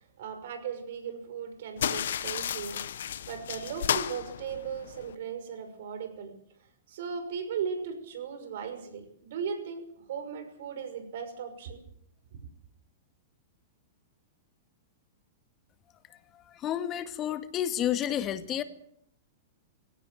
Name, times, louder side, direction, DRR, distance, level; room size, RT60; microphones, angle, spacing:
voice 1, 0.0-2.8 3.3-6.3 6.9-11.8, right 6 dB, 65° right, 8 dB, 5.8 m, -37 dB
sound 1, 1.8-5.2, left 9 dB, 70° left, 1.1 m, -33 dB
voice 2, 16.5-18.6, left 11 dB, 30° left, 10 dB, 2.0 m, -30 dB
23.5 x 17.5 x 7.8 m, 0.70 s
hypercardioid pair, 105°, 0 cm